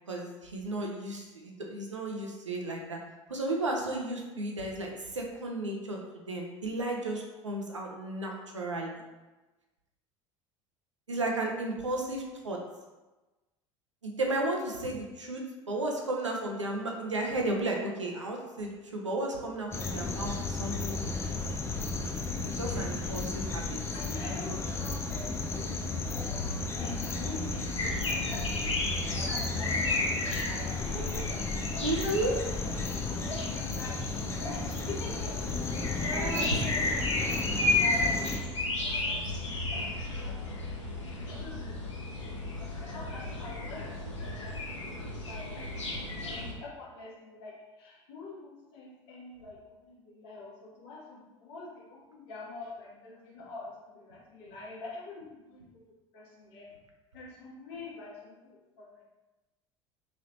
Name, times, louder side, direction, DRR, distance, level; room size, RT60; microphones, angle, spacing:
voice 1, 0.1-3.0 3.3-9.0 11.1-12.6 14.0-21.0 21.2-21.4 22.4-23.8 31.8-32.4 36.0-36.5, right 2 dB, 85° right, 0 dB, 0.5 m, -34 dB
sound 1, 19.7-38.4, left 3 dB, 15° left, 0.4 m, -34 dB
voice 2, 23.9-32.1 32.8-35.3 35.6-38.2 38.5-39.1 39.4-42.3 42.5-45.7 45.9-56.7 57.1-59.0, left 3 dB, 60° left, -5 dB, 1.0 m, -45 dB
sound 2, 27.8-46.5, left 2 dB, 80° left, 0.6 m, -33 dB
3.1 x 2.8 x 2.7 m, 1.1 s
figure-of-eight pair, 65°, 15 cm